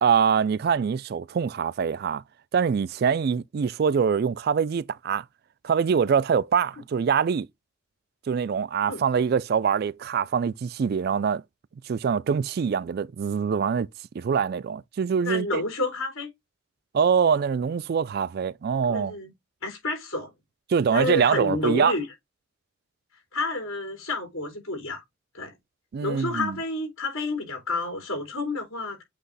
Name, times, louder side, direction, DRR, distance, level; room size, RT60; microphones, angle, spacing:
voice 1, 0.0-2.2 2.5-5.2 5.6-7.5 8.3-11.4 11.9-13.9 14.1-15.6 16.9-19.1 20.7-21.9 25.9-26.6, right 6 dB, 50° right, 0.3 m, -24 dB
voice 2, 15.2-16.3 18.9-19.3 19.6-20.3 20.9-22.1 23.3-25.0 25.3-25.5 26.0-29.0, left 2 dB, 85° left, 3.8 m, -30 dB
8.1 x 3.0 x 3.9 m
head